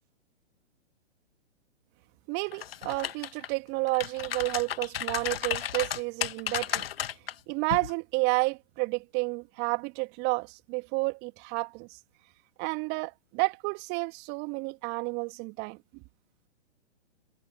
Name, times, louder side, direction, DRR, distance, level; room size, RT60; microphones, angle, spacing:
voice 1, 2.3-6.8 7.5-11.9 12.6-15.8, right 28 dB, 30° right, 2.1 m, -31 dB
sound 1, 2.5-3.5 3.9-7.3 7.7-7.9, left 10 dB, 60° left, 1.7 m, -33 dB
figure-of-eight pair, 115°, 34 cm